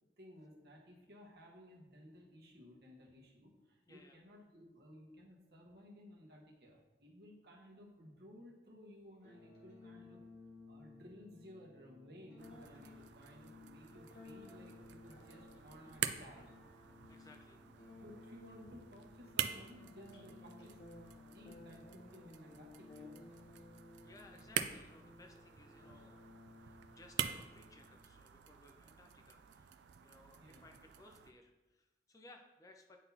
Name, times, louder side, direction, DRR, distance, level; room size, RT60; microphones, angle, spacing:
voice 1, 0.2-10.2 10.7-16.5 18.0-20.8 21.3-23.1 30.3-30.7, equal, 60° right, -1 dB, 1.1 m, -57 dB
voice 2, 3.9-4.2 17.1-17.6 24.0-26.3 26.6-33.0, left 2 dB, 20° left, 4 dB, 0.4 m, -61 dB
sound 1, 9.2-28.2, left 2 dB, 70° left, 1.4 m, -57 dB
sound 2, 12.4-31.3, right 9 dB, 80° right, 0.4 m, -46 dB
9.7 x 3.9 x 2.8 m, 1.1 s
head